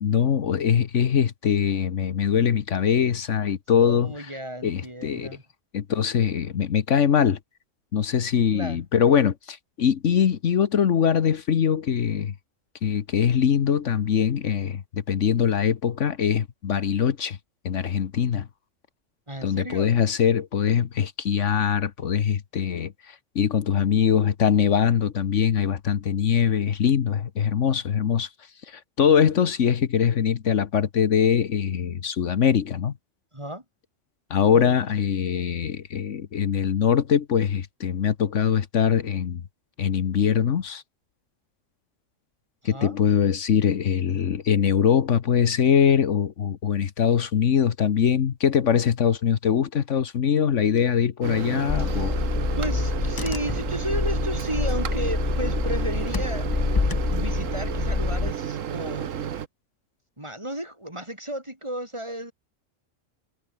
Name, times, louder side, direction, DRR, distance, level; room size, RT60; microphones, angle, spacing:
voice 1, 0.0-4.1 4.6-5.3 5.7-7.4 7.9-12.3 12.8-17.4 17.6-18.5 19.4-28.3 28.7-32.9 34.3-39.4 39.8-40.8 42.6-52.2, left 8 dB, 70° left, 1.4 m, -22 dB
voice 2, 3.8-5.4 8.5-8.8 19.3-19.9 33.3-33.6 34.5-34.8 42.6-43.0 52.5-56.8 57.0-59.2 60.2-62.3, right 1 dB, 20° right, 5.6 m, -33 dB
Microwave oven, 51.2-59.5, right 9 dB, 80° right, 1.4 m, -32 dB
Car / Engine, 51.7-58.3, left 4 dB, 25° left, 0.5 m, -26 dB
omnidirectional pair, 1.3 m